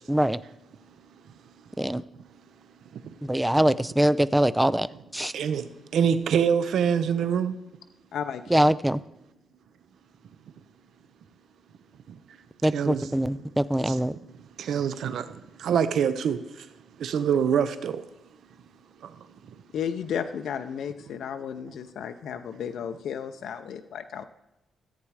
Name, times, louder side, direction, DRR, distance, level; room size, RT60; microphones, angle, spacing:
voice 1, 0.1-0.4 1.8-2.0 3.2-4.9 5.1-5.3 8.5-9.0 12.6-14.2, right 1 dB, 5° right, 0.3 m, -23 dB
voice 2, 5.3-5.7 5.9-7.5 12.7-13.1 13.9-14.0 14.6-15.3 15.6-16.4 17.0-18.0, right 7 dB, 75° right, 0.7 m, -24 dB
voice 3, 8.1-8.8 19.7-24.3, left 8 dB, 80° left, 0.6 m, -33 dB
14.0 x 8.4 x 4.8 m
wide cardioid pair, 150°, 0 cm